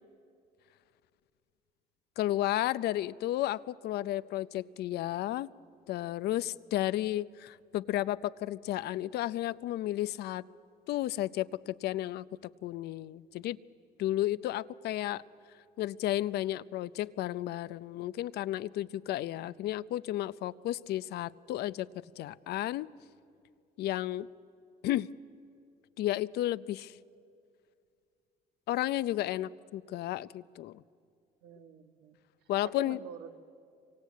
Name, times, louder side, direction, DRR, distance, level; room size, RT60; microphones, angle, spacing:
voice 1, 2.2-5.5 5.9-10.4 10.9-13.6 14.0-15.2 15.8-21.9 22.2-22.9 23.8-24.3 24.8-25.1 26.0-27.0 28.7-30.8 32.5-33.0, left 14 dB, 75° left, 16 dB, 0.6 m, -33 dB
voice 2, 31.4-32.2 32.6-33.4, right 9 dB, 80° right, 7 dB, 1.5 m, -47 dB
27.5 x 24.5 x 8.4 m, 2.4 s
cardioid pair, 110°, 17 cm